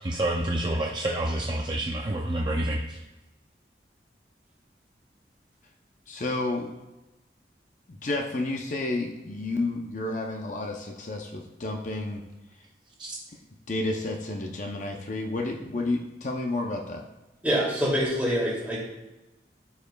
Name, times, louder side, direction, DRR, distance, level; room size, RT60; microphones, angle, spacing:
voice 1, 0.0-3.0 13.0-13.2, right 1 dB, 25° right, -1 dB, 0.5 m, -28 dB
voice 2, 6.1-6.7 7.9-12.2 13.7-17.0, left 2 dB, 45° left, 2 dB, 0.6 m, -31 dB
voice 3, 17.4-18.9, equal, 10° right, -6 dB, 2.6 m, -25 dB
14.0 x 4.7 x 2.3 m, 1.0 s
head